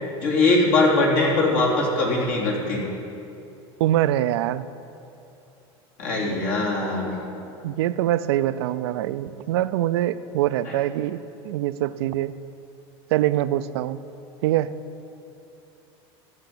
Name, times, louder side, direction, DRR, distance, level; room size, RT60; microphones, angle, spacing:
voice 1, 0.2-2.9 6.0-7.2, left 2 dB, 70° left, -4 dB, 3.4 m, -21 dB
voice 2, 3.8-4.7 7.6-12.4 13.1-14.0 14.4-14.7, right 13 dB, 80° right, 14 dB, 0.4 m, -24 dB
14.0 x 5.8 x 7.9 m, 2.8 s
supercardioid pair, 110°, 13 cm